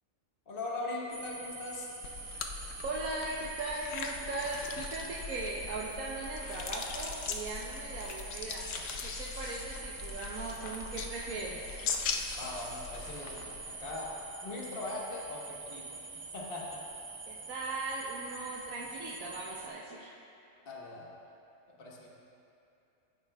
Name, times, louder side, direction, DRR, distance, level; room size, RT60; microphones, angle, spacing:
voice 1, 0.5-1.9 12.4-15.9 16.3-16.8 20.6-21.1 21.8-22.1, left 2 dB, 45° left, -3 dB, 1.4 m, -40 dB
sound 1, 1.1-19.7, right 3 dB, 55° right, 1.3 m, -46 dB
sound 2, 2.0-14.2, left 5 dB, 70° left, 1.0 m, -40 dB
voice 2, 2.8-8.7 9.0-11.5 17.3-20.1, right 2 dB, 85° right, -4 dB, 1.3 m, -38 dB
16.0 x 9.1 x 2.3 m, 2.7 s
omnidirectional pair, 1.4 m